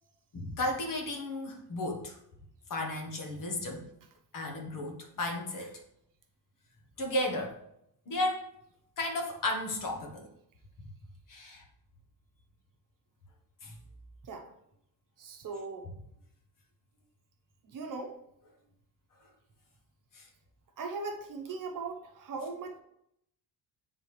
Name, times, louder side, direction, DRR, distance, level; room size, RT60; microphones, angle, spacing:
voice 1, 0.3-2.2 2.7-3.8 4.3-5.8 7.0-7.6 8.1-8.5 9.0-10.3 11.3-11.6 13.6-13.7 20.1-20.3, left 1 dB, 50° left, 2 dB, 1.2 m, -34 dB
voice 2, 15.2-15.9 17.6-18.2 20.8-22.8, right 4 dB, 45° right, 4 dB, 0.9 m, -39 dB
8.7 x 3.7 x 3.3 m, 0.76 s
cardioid pair, 170°, 43 cm